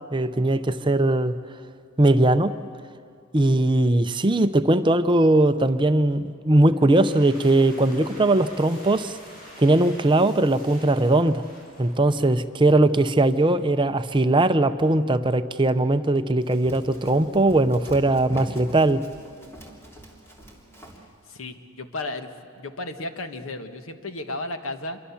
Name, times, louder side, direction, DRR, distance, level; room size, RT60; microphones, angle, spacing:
voice 1, 0.1-1.3 2.0-2.5 3.3-9.2 9.6-11.4 11.8-19.0, right 2 dB, 20° right, 11 dB, 0.6 m, -20 dB
sound 1, 6.7-12.4, equal, 40° left, 7.5 m, -46 dB
Run, 16.4-21.1, right 1 dB, 10° left, 3.2 m, -43 dB
voice 2, 21.2-25.0, left 2 dB, 70° left, 8 dB, 1.5 m, -34 dB
27.0 x 23.0 x 7.2 m, 2.4 s
head